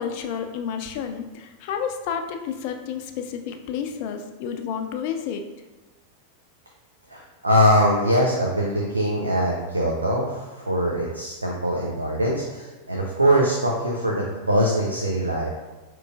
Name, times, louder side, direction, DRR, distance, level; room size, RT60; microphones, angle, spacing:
voice 1, 0.0-5.4, left 7 dB, 45° left, 6 dB, 0.4 m, -30 dB
voice 2, 7.1-15.5, equal, 80° right, -1 dB, 0.4 m, -22 dB
4.8 x 3.0 x 2.3 m, 1.2 s
figure-of-eight pair, 90°, 0 cm